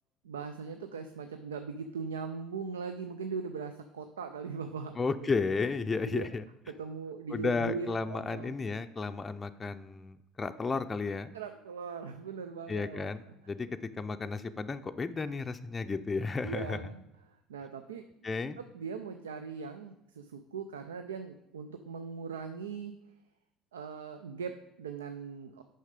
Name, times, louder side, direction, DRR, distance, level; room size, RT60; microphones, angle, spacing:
voice 1, 0.2-5.3 6.1-6.3 6.7-8.5 11.3-13.3 16.4-17.0 17.3-18.1 18.6-22.9 23.7-25.6, right 5 dB, 85° right, 9 dB, 0.4 m, -40 dB
voice 2, 5.0-6.4 7.3-11.3 12.7-13.7 14.0-16.8 18.2-18.6, left 4 dB, 25° left, 8 dB, 0.4 m, -33 dB
6.4 x 5.5 x 5.1 m, 0.90 s
hypercardioid pair, 65°, 0 cm